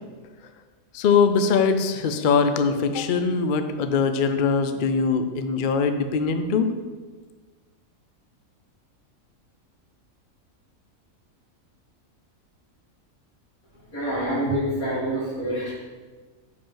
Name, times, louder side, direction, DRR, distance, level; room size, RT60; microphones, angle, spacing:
voice 1, 0.9-6.7, left 5 dB, 65° left, 8 dB, 0.5 m, -22 dB
voice 2, 13.9-15.7, right 1 dB, 85° left, -7 dB, 3.0 m, -26 dB
9.3 x 5.1 x 3.8 m, 1.4 s
omnidirectional pair, 1.5 m